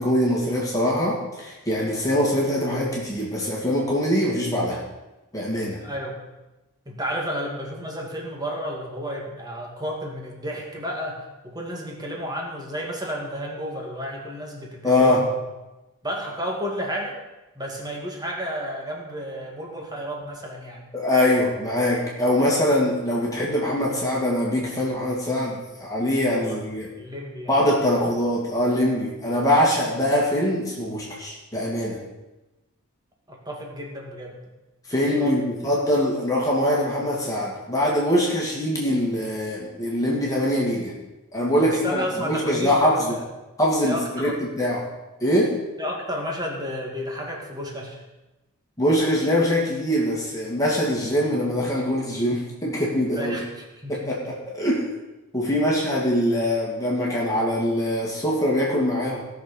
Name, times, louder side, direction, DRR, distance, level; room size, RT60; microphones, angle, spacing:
voice 1, 0.0-4.8 5.3-5.8 14.8-15.3 20.9-26.9 27.5-32.0 34.9-41.0 41.3-43.1 43.6-44.9 45.2-45.6 48.8-53.4 53.9-54.9 55.3-59.3, left 1 dB, 15° left, -4 dB, 2.3 m, -23 dB
voice 2, 5.8-6.2 6.9-15.3 16.0-17.2 17.5-20.9 26.3-26.6 27.0-27.6 33.3-34.4 35.2-35.4 41.6-43.2 43.9-44.4 45.8-48.0 53.2-54.2, equal, 20° right, -1 dB, 2.4 m, -32 dB
17.5 x 6.7 x 5.5 m, 1.0 s
head